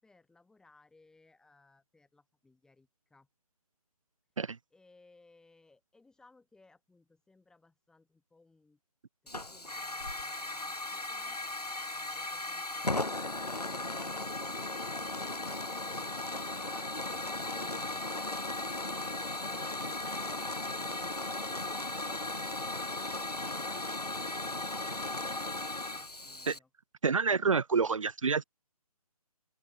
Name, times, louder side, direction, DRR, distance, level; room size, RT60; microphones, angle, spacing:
voice 1, 0.0-3.3 4.7-8.8 9.2-11.4, left 3 dB, 5° left, 6.3 m, -64 dB
Hiss / Fire, 9.3-26.6, left 2 dB, 90° left, 1.3 m, -36 dB
voice 2, 27.0-28.4, right 5 dB, 55° right, 0.9 m, -28 dB
open air
figure-of-eight pair, 140°, 20 cm